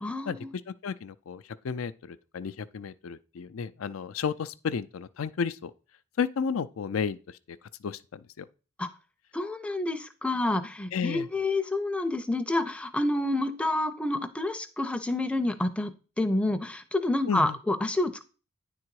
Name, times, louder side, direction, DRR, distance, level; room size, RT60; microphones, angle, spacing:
voice 1, 0.0-0.5 8.8-8.9 9.3-18.2, left 2 dB, 5° left, 0.5 m, -28 dB
voice 2, 0.7-5.7 6.2-7.2 7.5-7.6 7.8-8.5 10.9-11.3 17.3-17.6, left 6 dB, 85° left, 0.4 m, -32 dB
9.6 x 3.8 x 4.6 m
head